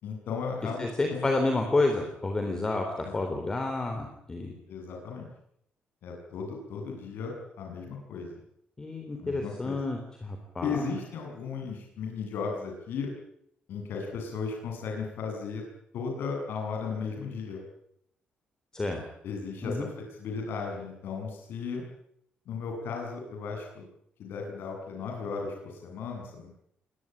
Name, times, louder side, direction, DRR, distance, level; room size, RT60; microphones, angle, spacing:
voice 1, 0.0-0.8 1.1-1.3 3.0-3.1 4.7-5.3 6.0-8.3 9.2-9.8 10.6-13.1 13.7-15.6 15.9-17.6 19.2-21.8 22.5-23.8 24.2-26.5, left 5 dB, 75° left, 1 dB, 7.3 m, -35 dB
voice 2, 0.8-4.5 8.8-10.8 18.7-19.0 19.6-19.9, left 2 dB, 20° left, 4 dB, 3.5 m, -30 dB
23.0 x 20.0 x 9.0 m, 0.71 s
cardioid pair, 170°, 4 cm